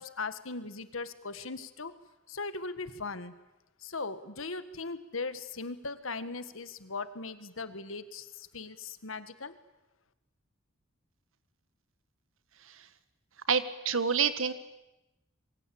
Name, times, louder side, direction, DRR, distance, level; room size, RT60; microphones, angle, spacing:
voice 1, 0.0-1.9 2.3-3.3 3.8-9.6, left 3 dB, 75° left, 12 dB, 1.7 m, -39 dB
voice 2, 13.5-14.5, right 6 dB, 75° right, 13 dB, 1.6 m, -28 dB
26.5 x 22.5 x 8.7 m, 0.97 s
head